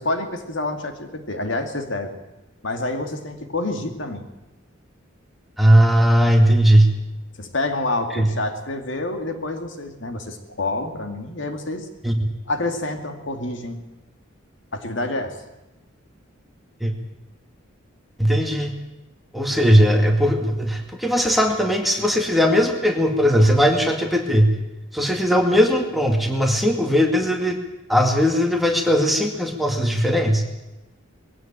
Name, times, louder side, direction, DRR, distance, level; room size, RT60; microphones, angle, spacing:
voice 1, 0.0-2.2 2.6-4.3 7.4-11.9 12.5-13.8 14.7-15.4, left 2 dB, 65° left, 6 dB, 2.4 m, -28 dB
voice 2, 5.6-6.9 8.1-8.3 12.0-12.2 16.8-16.9 18.2-18.7 19.3-24.5 24.9-27.6 27.9-30.4, equal, ahead, 2 dB, 2.1 m, -18 dB
20.5 x 16.0 x 8.9 m, 1.0 s
head